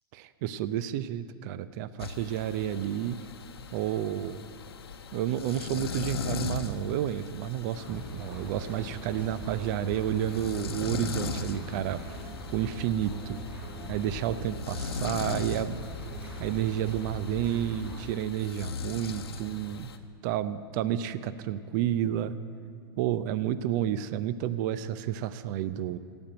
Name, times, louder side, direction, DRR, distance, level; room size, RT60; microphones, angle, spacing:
voice 1, 0.1-3.2 3.7-4.5 5.1-12.2 12.5-13.4 13.9-15.8 16.4-19.9 20.2-22.3 23.0-26.0, right 11 dB, 50° right, 14 dB, 0.5 m, -30 dB
sound 1, 2.0-20.0, left 5 dB, 80° left, 0.9 m, -39 dB
sound 2, 7.7-18.1, equal, 15° right, 3.6 m, -41 dB
15.5 x 5.3 x 8.7 m, 2.2 s
hypercardioid pair, 105°, 13 cm